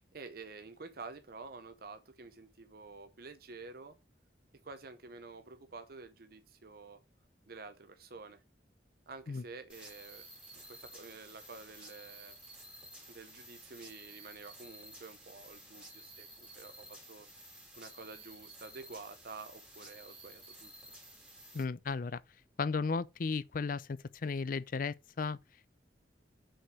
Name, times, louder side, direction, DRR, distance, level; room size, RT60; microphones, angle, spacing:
voice 1, 0.0-3.9 4.6-7.0 7.5-8.4 9.1-10.2 10.5-12.4 13.1-17.3 17.8-20.7, right 4 dB, 60° right, 0.8 m, -49 dB
sound 1, 9.7-21.6, right 1 dB, 5° right, 3.1 m, -53 dB
voice 2, 21.5-22.2 22.6-25.4, left 4 dB, 50° left, 0.5 m, -35 dB
6.3 x 4.7 x 6.2 m
head